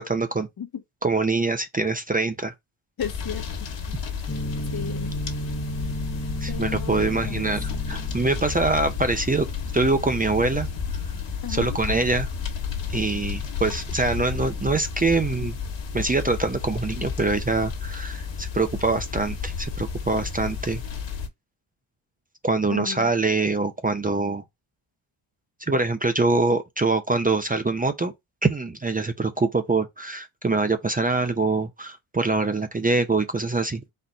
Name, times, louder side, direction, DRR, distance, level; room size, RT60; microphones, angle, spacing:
voice 1, 0.0-0.5 1.0-2.5 6.4-9.5 9.7-10.7 11.5-12.3 12.9-15.6 15.9-20.8 22.4-24.4 25.7-28.1 28.4-33.8, right 3 dB, 20° right, 0.7 m, -24 dB
sound 1, 3.0-21.3, left 6 dB, 65° left, 1.5 m, -32 dB
voice 2, 3.0-4.0 4.7-5.1 6.5-7.5 11.4-11.8 22.7-23.1, left 8 dB, 50° left, 1.0 m, -35 dB
sound 2, 4.3-9.2, right 1 dB, 25° left, 0.9 m, -34 dB
4.4 x 2.5 x 4.3 m
supercardioid pair, 60°, 48 cm